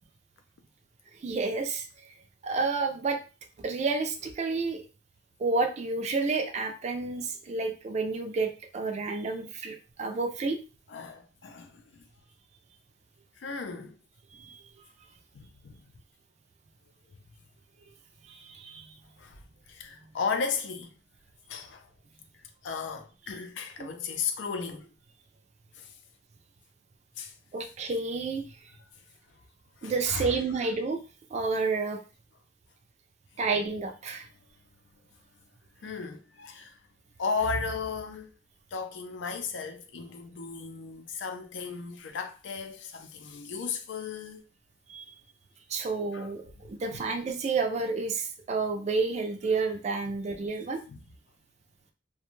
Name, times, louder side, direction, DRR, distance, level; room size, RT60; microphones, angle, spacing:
voice 1, 1.2-1.9 2.4-3.2 3.6-4.8 5.4-10.6 14.4-14.6 18.3-18.9 23.8-23.9 27.5-28.4 29.8-31.0 31.3-32.0 33.4-34.3 44.9-45.1 45.7-50.8, right 4 dB, 40° right, 0.4 m, -30 dB
voice 2, 10.9-12.1 13.4-14.0 15.3-15.8 19.2-19.4 19.7-20.9 21.5-21.9 22.6-24.9 25.8-25.9 27.2-27.3 29.8-30.4 35.8-36.8 37.2-38.3 38.7-44.4 46.1-46.3 46.9-47.0 50.1-50.2 50.9-51.0, left 5 dB, 75° left, 0.4 m, -35 dB
2.4 x 2.2 x 3.0 m
head